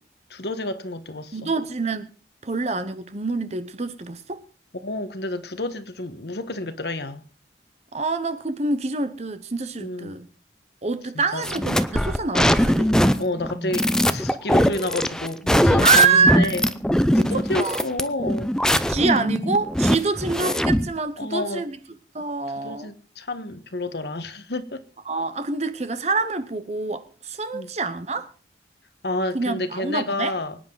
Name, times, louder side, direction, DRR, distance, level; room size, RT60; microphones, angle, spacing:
voice 1, 0.3-1.5 4.8-7.2 9.8-10.2 11.1-11.5 13.2-16.6 17.2-18.5 21.2-21.6 22.6-24.8 27.5-27.7 29.0-30.6, left 2 dB, 65° left, 1.4 m, -30 dB
voice 2, 1.3-2.1 2.4-4.4 7.9-10.3 10.8-12.9 15.8-16.6 17.2-17.8 18.9-21.8 22.1-22.9 25.1-28.3 29.3-30.3, right 4 dB, 40° right, 0.8 m, -25 dB
sound 1, 11.4-21.0, equal, 5° left, 0.6 m, -21 dB
24.5 x 9.8 x 4.0 m
head